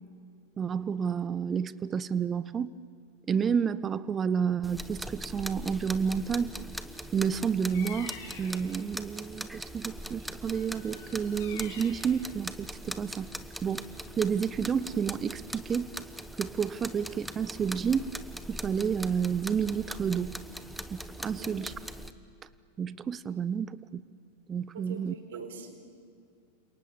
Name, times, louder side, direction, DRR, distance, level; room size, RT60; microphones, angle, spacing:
voice 1, 0.6-2.7 3.3-6.5 7.1-13.3 13.6-13.9 14.2-15.9 16.4-18.1 18.5-20.4 20.9-21.7 22.8-24.0 24.5-25.1, right 7 dB, 20° right, 18 dB, 0.9 m, -30 dB
sound 1, 4.6-22.1, right 1 dB, ahead, 1.2 m, -41 dB
Bird vocalization bird call bird song, 7.7-8.7 10.5-12.1, left 7 dB, 55° left, 6.0 m, -46 dB
voice 2, 24.7-25.7, right 5 dB, 60° right, 6 dB, 4.4 m, -43 dB
29.5 x 27.5 x 7.4 m, 2.4 s
figure-of-eight pair, 90°, 0 cm